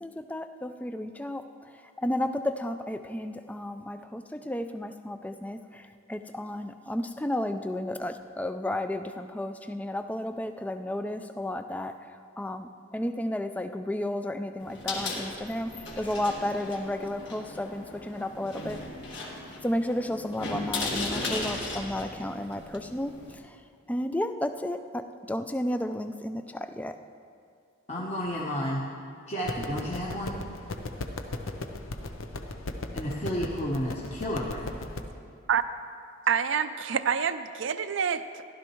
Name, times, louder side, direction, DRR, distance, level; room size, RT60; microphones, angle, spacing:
voice 1, 0.0-1.4 2.0-5.8 6.1-11.9 12.4-18.8 19.6-23.2 23.9-25.0 25.3-27.0, left 1 dB, 5° left, 8 dB, 0.3 m, -32 dB
sound 1, 14.6-23.4, left 2 dB, 60° left, 1.7 m, -37 dB
voice 2, 27.9-28.9 29.3-30.4 32.9-34.9, equal, 30° left, -6 dB, 1.0 m, -32 dB
sound 2, 29.4-35.0, left 2 dB, 80° left, 0.7 m, -37 dB
voice 3, 36.3-38.5, right 7 dB, 65° right, 12 dB, 0.4 m, -27 dB
15.5 x 11.5 x 3.1 m, 2.4 s
head